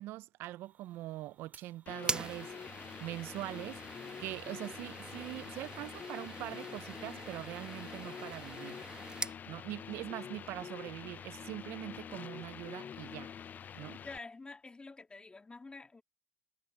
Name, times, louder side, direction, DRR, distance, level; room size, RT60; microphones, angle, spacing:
voice 1, 0.0-2.5 3.0-3.8 4.2-8.8 9.5-13.3 13.7-14.0, right 16 dB, 75° right, 0.4 m, -43 dB
Fire, 0.5-5.9, right 6 dB, 45° right, 3.6 m, -65 dB
sound 1, 1.9-14.2, left 8 dB, 50° left, 0.4 m, -46 dB
sound 2, 2.0-9.4, right 3 dB, 25° right, 1.5 m, -43 dB
voice 2, 14.0-16.0, left 3 dB, 25° left, 2.7 m, -48 dB
supercardioid pair, 65°, 4 cm